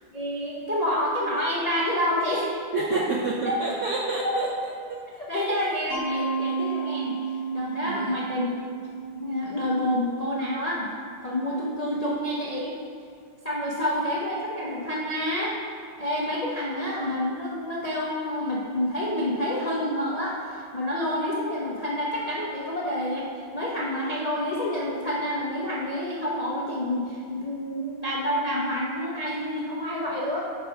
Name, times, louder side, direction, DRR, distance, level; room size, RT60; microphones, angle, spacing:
voice 1, 0.1-3.0 3.4-3.6 4.2-4.3 5.2-7.2 7.5-8.5 9.1-10.9 11.2-12.8 13.4-15.5 16.0-23.3 23.5-30.4, left 1 dB, 50° left, -6 dB, 0.4 m, -28 dB
voice 2, 2.7-4.5 4.9-5.0 5.3-5.4 7.8-8.1, right 3 dB, 70° right, -2 dB, 0.7 m, -29 dB
Mallet percussion, 5.9-10.7, right 5 dB, 70° left, 2.4 m, -32 dB
8.5 x 3.4 x 5.8 m, 2.3 s
omnidirectional pair, 2.0 m